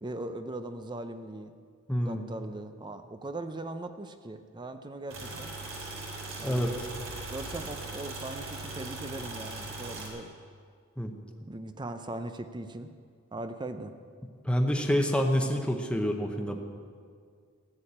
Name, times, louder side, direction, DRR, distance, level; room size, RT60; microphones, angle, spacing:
voice 1, 0.0-1.5 2.0-5.5 6.4-6.7 7.3-10.3 11.4-12.9 13.3-13.9, right 2 dB, 20° right, 9 dB, 0.6 m, -39 dB
voice 2, 1.9-2.2 6.4-6.7 11.0-11.1 14.4-16.6, equal, 5° left, 3 dB, 0.9 m, -27 dB
sound 1, 5.1-10.1, right 2 dB, 70° right, 3.1 m, -39 dB
14.0 x 8.6 x 8.6 m, 2.1 s
head